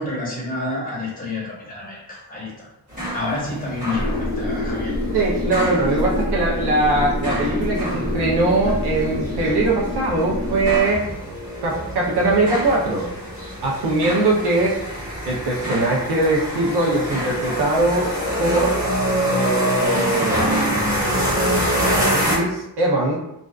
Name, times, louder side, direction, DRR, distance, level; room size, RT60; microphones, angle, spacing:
voice 1, 0.0-2.7 3.1-5.0, left 2 dB, 25° left, -5 dB, 0.9 m, -29 dB
sound 1, 2.9-22.4, equal, 20° right, 0.8 m, -26 dB
sound 2, 3.9-10.8, left 1 dB, 50° left, 0.7 m, -26 dB
voice 2, 5.1-11.0 11.6-13.1 13.6-14.8 15.2-18.1 18.4-18.8 19.3-21.1 22.1-23.2, right 2 dB, 85° right, -3 dB, 0.6 m, -21 dB
2.5 x 2.2 x 2.3 m, 0.84 s
wide cardioid pair, 140°, 39 cm